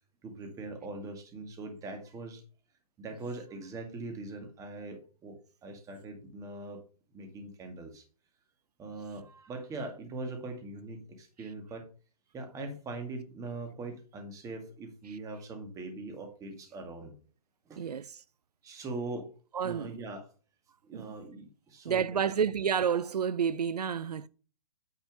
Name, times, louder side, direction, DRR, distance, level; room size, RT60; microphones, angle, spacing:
voice 1, 0.2-2.4 3.0-6.8 7.1-8.0 8.8-11.9 12.3-17.2 17.7-17.8 18.6-19.3 19.6-20.3 20.8-22.3, right 2 dB, 15° right, 2.0 m, -41 dB
voice 2, 17.8-18.2 19.5-20.0 20.9-21.1 21.8-24.3, right 7 dB, 90° right, 0.5 m, -30 dB
9.3 x 4.3 x 5.1 m
hypercardioid pair, 135°, 20 cm